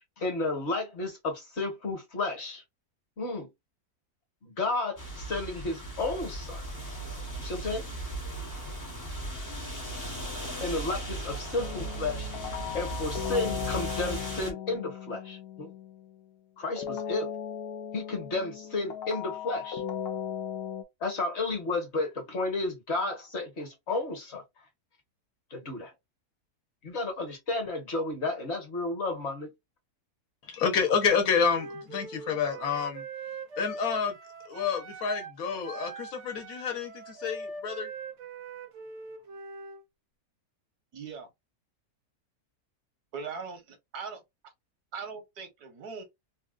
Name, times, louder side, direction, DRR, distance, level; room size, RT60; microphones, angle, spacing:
voice 1, 0.2-2.6 3.2-3.5 4.4-6.6 7.4-7.9 10.6-12.3 12.7-15.7 16.6-17.3 17.9-19.8 21.0-24.4 25.5-25.9 26.8-29.5, left 2 dB, 50° left, 1.3 m, -32 dB
sound 1, 5.0-14.5, right 1 dB, 25° left, 0.4 m, -37 dB
sound 2, 11.6-16.2 16.8-20.8, left 9 dB, 90° left, 1.2 m, -37 dB
voice 2, 30.5-33.0 33.6-34.1 34.5-37.9, left 6 dB, 70° left, 1.3 m, -28 dB
Wind instrument woodwind instrument, 31.3-35.4 35.6-39.8, right 3 dB, 60° right, 0.9 m, -42 dB
voice 3, 40.9-41.3 43.1-44.2 44.9-46.0, right 5 dB, 85° right, 1.6 m, -40 dB
3.5 x 2.3 x 2.4 m
omnidirectional pair, 1.6 m